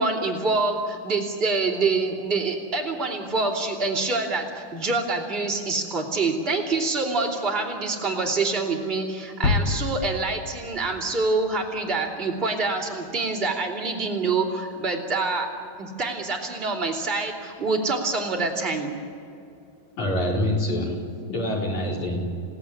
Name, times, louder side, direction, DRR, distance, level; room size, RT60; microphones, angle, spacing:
voice 1, 0.0-15.5 15.8-18.9, right 3 dB, 15° right, -7 dB, 2.0 m, -26 dB
sound 1, 9.4-12.1, left 3 dB, 65° left, 1.3 m, -28 dB
voice 2, 20.0-22.4, left 1 dB, 40° left, -3 dB, 5.2 m, -26 dB
30.0 x 18.0 x 10.0 m, 2.5 s
omnidirectional pair, 5.6 m